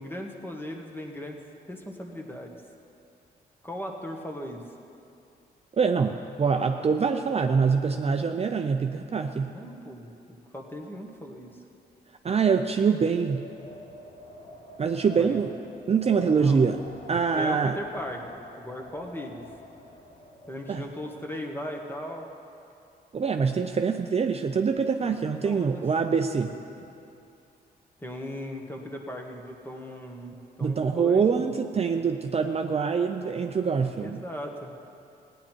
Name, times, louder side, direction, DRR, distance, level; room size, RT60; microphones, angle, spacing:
voice 1, 0.0-1.4 1.7-2.6 3.6-4.6 8.9-9.0 9.4-10.1 10.5-11.5 15.2-15.5 16.2-16.6 17.3-19.4 20.5-22.3 25.4-25.8 26.5-26.8 28.0-31.4 34.0-34.7, equal, 10° left, 1 dB, 1.6 m, -38 dB
voice 2, 5.8-9.5 12.2-13.4 14.8-15.5 15.9-16.8 17.1-17.8 20.7-20.8 23.1-26.5 30.6-34.2, right 5 dB, 35° right, 5 dB, 0.6 m, -24 dB
Wind, 12.9-21.3, left 2 dB, 50° left, 2.9 m, -47 dB
16.5 x 9.9 x 4.6 m, 2.6 s
cardioid pair, 75°, 18 cm